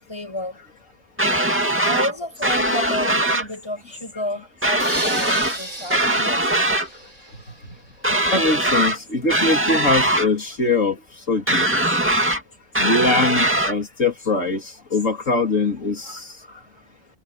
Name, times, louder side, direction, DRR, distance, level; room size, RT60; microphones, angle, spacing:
voice 1, 0.1-0.6 1.8-6.4 16.5-16.6, left 1 dB, 20° left, 5.7 m, -31 dB
sound 1, 1.2-2.1 2.4-3.5 4.6-5.6 5.9-6.9 8.0-9.0 9.3-10.3 11.5-12.4 12.7-13.7, right 1 dB, 10° right, 2.3 m, -21 dB
sound 2, 4.8-7.8, right 1 dB, 30° right, 2.6 m, -33 dB
voice 2, 8.3-11.0 11.3-11.6 12.8-14.6 14.9-16.2, left 3 dB, 80° left, 3.5 m, -22 dB
omnidirectional pair, 1.3 m